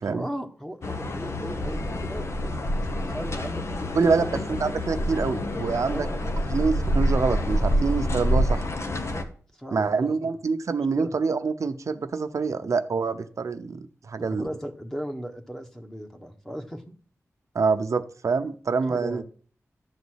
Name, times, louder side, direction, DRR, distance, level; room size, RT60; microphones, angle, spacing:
voice 1, 0.0-4.4 5.9-6.2 8.9-9.2 9.5-10.3 11.0-11.1 14.2-16.8 18.9-19.2, equal, 10° left, 4 dB, 1.4 m, -37 dB
sound 1, 0.8-9.2, equal, 55° left, 1.2 m, -27 dB
voice 2, 4.0-6.1 6.5-8.6 9.7-14.5 17.5-19.2, right 4 dB, 70° right, 8 dB, 0.8 m, -26 dB
12.5 x 4.1 x 8.0 m, 0.43 s
wide cardioid pair, 110°, 6 cm